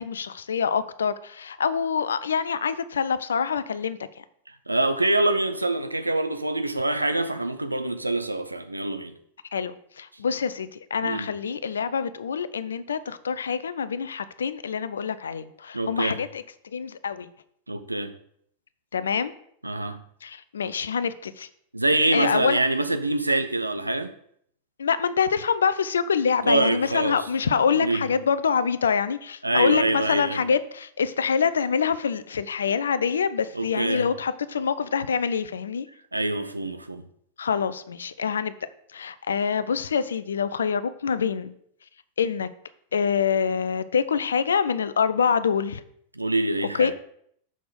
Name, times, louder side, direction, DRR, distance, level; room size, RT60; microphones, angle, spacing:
voice 1, 0.0-4.0 9.5-16.4 16.7-17.3 18.9-19.3 20.2-21.5 22.1-22.6 24.8-35.9 37.4-38.5 38.9-41.5 42.2-42.5 42.9-45.8 46.8-46.9, left 6 dB, 70° left, 0.5 m, -25 dB
voice 2, 4.7-9.1 11.0-11.3 15.7-16.2 17.7-18.1 19.6-20.0 21.7-24.1 26.4-27.3 27.7-28.1 29.4-30.5 33.5-34.1 36.1-37.0 46.1-46.9, right 2 dB, 85° right, 0.7 m, -25 dB
6.3 x 5.9 x 5.2 m
figure-of-eight pair, 90°, 0 cm